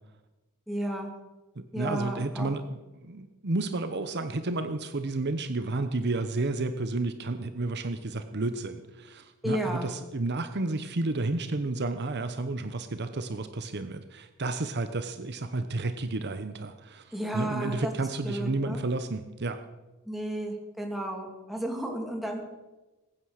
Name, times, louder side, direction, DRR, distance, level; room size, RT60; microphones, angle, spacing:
voice 1, 0.7-1.1 1.7-2.6 9.4-9.9 17.1-18.8 20.1-22.4, right 1 dB, ahead, 1 dB, 2.7 m, -33 dB
voice 2, 1.6-19.6, right 2 dB, 55° right, 9 dB, 0.9 m, -31 dB
21.5 x 9.5 x 6.6 m, 1.1 s
head